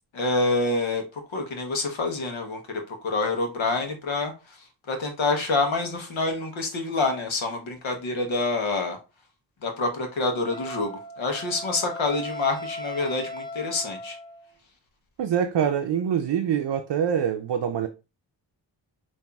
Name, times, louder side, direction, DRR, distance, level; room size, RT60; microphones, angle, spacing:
voice 1, 0.1-1.0 1.3-4.6 4.9-9.0 9.6-14.2, left 3 dB, 85° left, 0.9 m, -27 dB
Wind instrument woodwind instrument, 10.5-14.5, left 2 dB, 10° left, 0.6 m, -37 dB
voice 2, 15.2-17.9, right 8 dB, 60° right, 0.5 m, -25 dB
5.2 x 2.6 x 2.3 m
cardioid pair, 45°, 46 cm